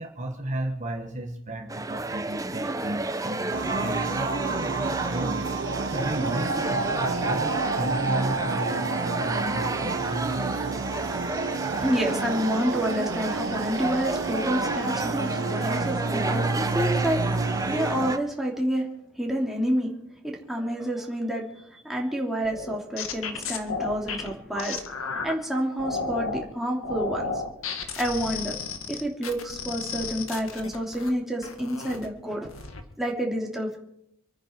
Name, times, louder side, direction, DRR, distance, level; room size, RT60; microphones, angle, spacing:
voice 1, 0.0-5.4 5.9-10.9, right 1 dB, 35° right, 2 dB, 1.4 m, -33 dB
sound 1, 1.7-18.2, right 2 dB, 15° right, 0.8 m, -31 dB
sound 2, 3.5-18.2, right 4 dB, 60° right, 0.8 m, -30 dB
voice 2, 11.8-17.2 17.7-18.9 19.1-19.9 20.2-21.4 21.8-27.3 28.0-28.6 28.9-32.5 33.0-33.8, equal, ahead, -2 dB, 3.0 m, -29 dB
sound 3, 22.4-25.3 25.8-26.5 26.8-31.1 31.4-32.1 32.5-32.8, left 4 dB, 85° left, 1.8 m, -33 dB
27.5 x 9.9 x 4.6 m, 0.78 s
head